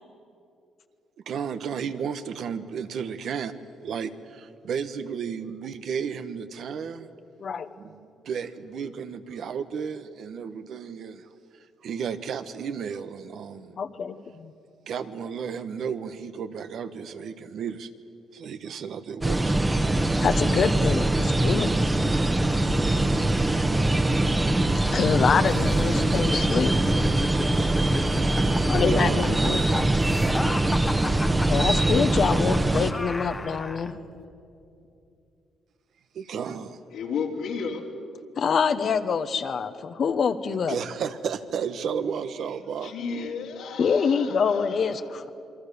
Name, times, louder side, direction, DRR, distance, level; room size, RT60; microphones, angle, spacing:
voice 1, 1.2-3.5 3.8-7.1 7.8-8.0 8.2-11.3 11.8-13.8 14.9-17.9 18.3-19.7 28.9-29.8 36.1-36.8 40.7-42.9, right 7 dB, 65° right, 10 dB, 1.3 m, -33 dB
voice 2, 13.8-14.5 20.2-21.7 24.9-26.7 28.6-30.1 31.5-33.9 38.4-40.8 43.8-45.3, left 6 dB, 55° left, 9 dB, 1.2 m, -25 dB
sound 1, 19.2-32.9, right 2 dB, 20° right, 1.4 m, -23 dB
sound 2, 25.5-33.9, left 2 dB, 15° left, 1.1 m, -35 dB
voice 3, 36.9-37.9 42.8-45.1, left 5 dB, 80° left, 0 dB, 3.5 m, -33 dB
27.5 x 23.0 x 6.9 m, 2.6 s
cardioid pair, 90°, 0 cm